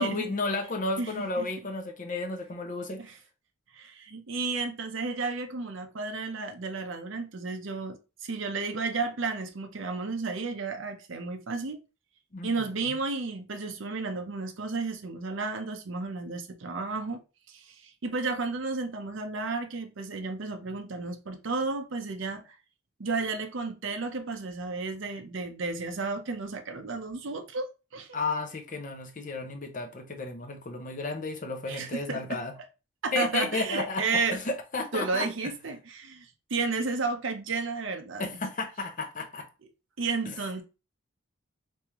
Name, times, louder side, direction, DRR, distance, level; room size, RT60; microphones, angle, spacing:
voice 1, 0.0-3.0 12.3-13.0 28.1-32.5 33.1-35.3 38.2-39.5 40.3-40.4, left 3 dB, 40° left, 0.7 m, -33 dB
voice 2, 1.0-1.5 3.0-3.2 3.7-11.8 12.4-17.2 17.5-22.5 23.0-28.2 31.6-32.4 33.0-34.4 34.9-38.3 40.0-40.6, right 3 dB, 60° right, 0.7 m, -32 dB
3.4 x 3.3 x 2.9 m
head